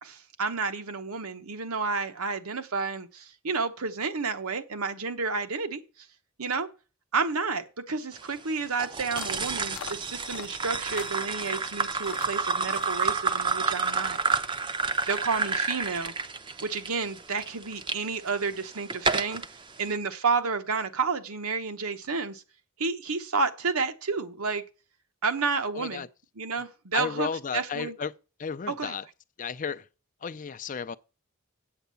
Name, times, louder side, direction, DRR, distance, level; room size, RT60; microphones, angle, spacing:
voice 1, 0.0-5.8 6.4-6.7 7.1-14.2 15.1-16.1 16.6-19.4 19.8-22.4 22.8-24.6 25.2-26.0 26.4-28.0 28.7-28.9, right 4 dB, 85° right, 1.0 m, -30 dB
sound 1, 8.8-18.0 18.5-19.5, right 4 dB, 20° right, 0.5 m, -29 dB
sound 2, 9.2-9.4 9.7-10.5 10.9-11.7 12.0-12.3 12.7-13.0, left 8 dB, 85° left, 0.6 m, -42 dB
voice 2, 25.7-26.1 26.9-28.1 28.4-29.0 29.4-29.9 30.2-31.0, left 6 dB, 35° left, 0.4 m, -33 dB
8.3 x 8.0 x 6.9 m
head